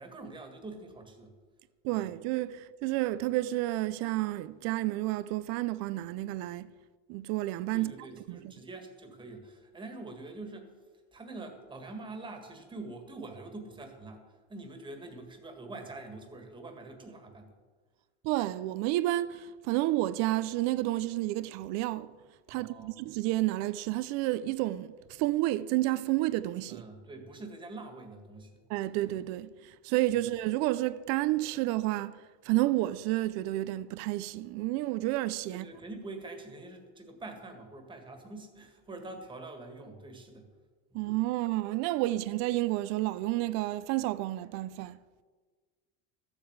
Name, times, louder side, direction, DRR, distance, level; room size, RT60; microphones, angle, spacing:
voice 1, 0.0-1.3 1.9-2.1 7.7-10.8 11.1-17.6 22.5-23.0 26.7-28.5 35.5-40.5 40.9-41.0, right 2 dB, 15° right, 1.8 m, -45 dB
voice 2, 1.8-6.7 7.1-7.9 8.3-8.4 18.2-22.1 22.5-26.8 28.7-35.7 40.9-45.0, right 17 dB, 50° right, 0.6 m, -30 dB
13.5 x 8.0 x 8.1 m
cardioid pair, 155°, 34 cm